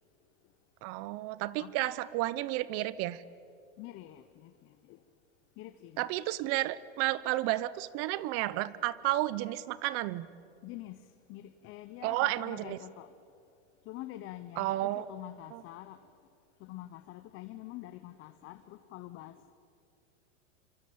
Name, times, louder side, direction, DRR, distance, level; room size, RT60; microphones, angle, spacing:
voice 1, 0.8-3.2 6.0-10.3 12.0-12.8 14.6-15.1 15.5-15.6, right 16 dB, 35° right, 0.9 m, -32 dB
voice 2, 3.8-5.0 5.6-6.1 10.6-13.1 13.8-16.1 16.6-19.5, left 15 dB, 35° left, 1.0 m, -46 dB
26.5 x 25.5 x 8.7 m
supercardioid pair, 140°, 38 cm